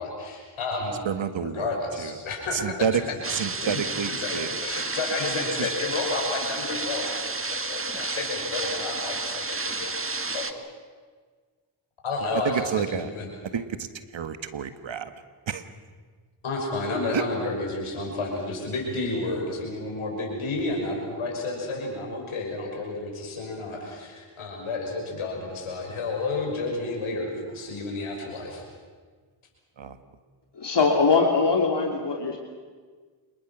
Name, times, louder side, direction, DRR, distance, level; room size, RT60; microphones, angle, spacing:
voice 1, 0.0-0.9 1.4-3.0 3.5-9.9 10.3-10.4 12.0-13.3 16.4-28.6, left 3 dB, 85° left, 0 dB, 6.1 m, -31 dB
voice 2, 1.1-1.7 2.6-2.9 3.3-4.5 12.5-13.1 13.5-13.8 14.1-15.1 15.5-15.6 17.1-17.2 29.8-30.0, right 7 dB, 65° right, 10 dB, 1.6 m, -29 dB
sound 1, 3.2-10.5, right 3 dB, 25° right, 1.8 m, -31 dB
voice 3, 30.5-32.4, left 4 dB, 60° left, 1 dB, 3.2 m, -22 dB
27.0 x 22.5 x 6.2 m, 1.5 s
supercardioid pair, 40°, 48 cm